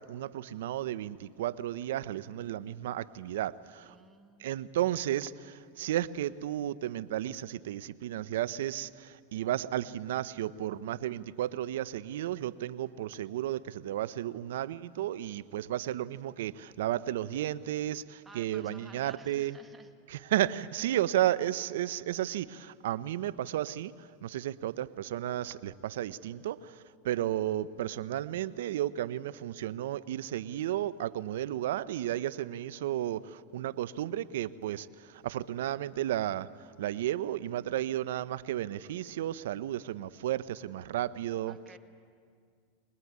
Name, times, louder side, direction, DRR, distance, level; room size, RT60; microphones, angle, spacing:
voice 1, 0.0-3.9 4.4-19.6 20.1-41.6, right 12 dB, 75° right, 16 dB, 0.8 m, -33 dB
voice 2, 3.7-4.5 18.2-19.9 41.5-41.8, right 3 dB, 15° right, 6 dB, 1.6 m, -53 dB
23.0 x 21.0 x 9.6 m, 2.2 s
hypercardioid pair, 120°, 0 cm